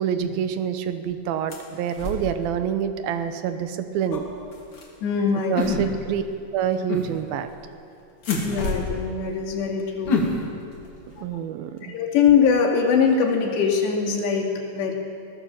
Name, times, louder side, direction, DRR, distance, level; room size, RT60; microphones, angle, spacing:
voice 1, 0.0-4.2 5.5-6.2 6.5-7.5 11.2-12.0, right 8 dB, 70° right, 9 dB, 2.5 m, -27 dB
sound 1, 1.5-2.5 3.6-3.8 4.1-5.5 7.0-7.6 8.1-11.2, left 2 dB, 30° left, 3.0 m, -36 dB
sound 2, 4.1-4.3 5.5-6.2 6.9-7.1 8.3-8.5 10.1-10.4, left 4 dB, 50° left, 3.6 m, -25 dB
voice 2, 5.0-5.9 8.4-10.2 11.2-11.3 11.8-14.9, left 6 dB, 75° left, 0 dB, 4.6 m, -22 dB
22.5 x 17.5 x 7.6 m, 2.5 s
omnidirectional pair, 5.0 m